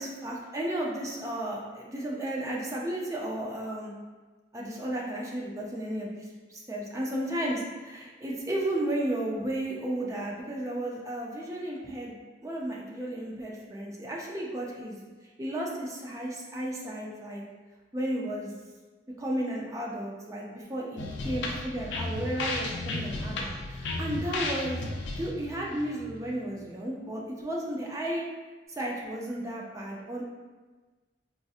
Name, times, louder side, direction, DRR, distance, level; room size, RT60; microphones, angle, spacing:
voice 1, 0.0-3.9 4.5-12.2 12.4-15.0 15.4-17.4 17.9-18.5 19.2-23.5 23.8-28.2 28.7-30.2, right 1 dB, 15° right, -3 dB, 0.4 m, -33 dB
sound 1, 21.0-26.6, left 2 dB, 70° left, 0.4 m, -34 dB
3.6 x 2.7 x 2.4 m, 1.3 s
head